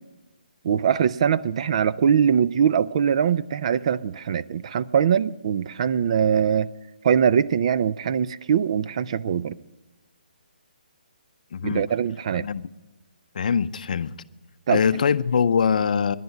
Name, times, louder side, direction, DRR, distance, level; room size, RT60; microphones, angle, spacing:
voice 1, 0.6-6.7 7.0-9.6 11.6-12.5 14.7-14.8, right 8 dB, 40° right, 0.3 m, -22 dB
voice 2, 11.5-11.8 12.4-12.7 13.3-14.2 14.7-16.2, left 6 dB, 55° left, 0.5 m, -23 dB
11.0 x 10.5 x 9.3 m
hypercardioid pair, 160°, 5 cm